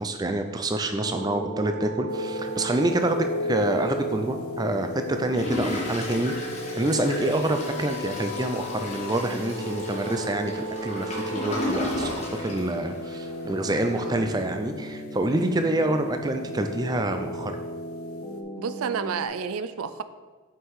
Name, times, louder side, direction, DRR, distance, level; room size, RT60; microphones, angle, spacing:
voice 1, 0.0-6.3 6.8-17.5, right 1 dB, 20° right, 6 dB, 0.4 m, -27 dB
sound 1, 0.9-19.3, right 1 dB, 55° left, 1.1 m, -37 dB
sound 2, 2.1-18.4, left 2 dB, 85° left, 0.7 m, -37 dB
voice 2, 3.0-3.4 13.9-14.3 18.6-20.0, right 6 dB, 85° right, 12 dB, 0.4 m, -31 dB
Toilet flush, 5.3-13.4 13.9-14.0 14.1-14.2, left 1 dB, 30° left, 1.2 m, -34 dB
5.8 x 5.6 x 4.7 m, 1.4 s
head